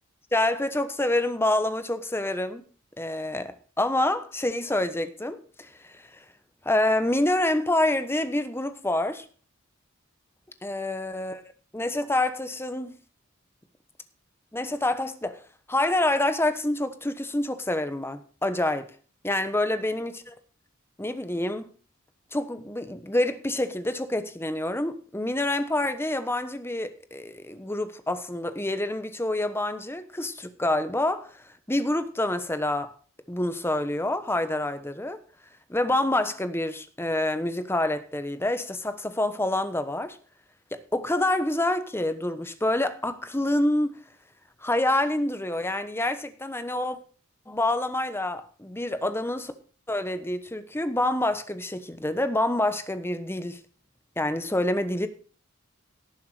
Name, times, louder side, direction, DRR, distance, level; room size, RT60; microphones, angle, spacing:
voice 1, 0.3-2.6 3.0-6.2 6.6-9.2 10.6-11.4 11.7-12.9 14.5-15.4 15.7-18.9 19.2-20.3 21.0-21.7 22.3-32.9 33.3-35.2 35.7-40.2 40.7-43.9 44.6-47.0 47.5-49.5 49.9-53.6 54.2-55.1, left 1 dB, 10° left, 1.1 m, -27 dB
18.0 x 7.1 x 4.9 m
head